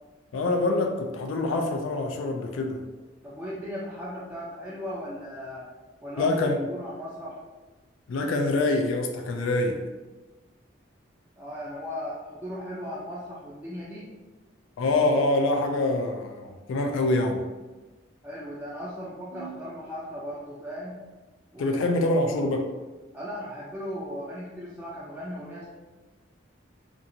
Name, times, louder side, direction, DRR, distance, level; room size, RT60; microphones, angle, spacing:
voice 1, 0.3-2.8 6.2-6.6 8.1-9.8 14.8-17.4 19.3-19.5 21.6-22.7, left 2 dB, 75° left, 3 dB, 0.3 m, -25 dB
voice 2, 3.2-5.7 6.0-7.4 11.4-14.1 18.2-21.0 21.5-22.0 23.1-25.7, equal, 10° right, -8 dB, 0.3 m, -37 dB
2.8 x 2.4 x 2.5 m, 1.2 s
head